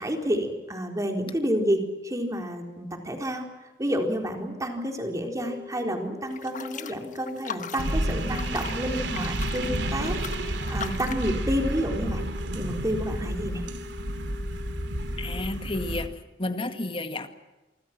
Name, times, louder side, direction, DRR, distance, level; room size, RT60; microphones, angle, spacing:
voice 1, 0.0-3.5 3.8-12.2 12.5-13.6, equal, 20° right, 3 dB, 4.1 m, -29 dB
sound 1, 5.4-15.4, left 5 dB, 5° left, 1.8 m, -44 dB
sound 2, 6.3-11.3, left 7 dB, 45° left, 1.4 m, -40 dB
sound 3, 7.8-16.1, right 1 dB, 80° right, 2.7 m, -31 dB
voice 2, 15.2-16.1 16.4-17.3, left 2 dB, 30° left, 8 dB, 2.0 m, -31 dB
27.5 x 25.0 x 6.1 m, 1.1 s
head